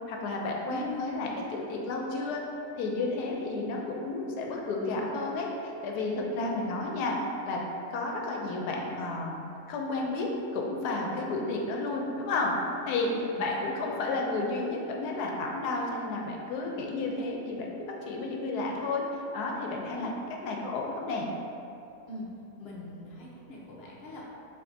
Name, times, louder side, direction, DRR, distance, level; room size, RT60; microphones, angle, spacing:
voice 1, 0.1-2.4 2.8-7.1 7.4-7.6 7.9-9.4 9.7-12.5 12.9-13.1 13.4-19.0 19.3-20.1 20.4-21.3, left 3 dB, 80° left, 0 dB, 1.1 m, -32 dB
voice 2, 0.6-1.4 6.3-6.8 13.1-14.0 19.9-20.1 22.1-22.3 22.6-24.2, equal, 50° left, -4 dB, 0.8 m, -40 dB
5.9 x 3.1 x 2.6 m, 2.8 s
omnidirectional pair, 1.6 m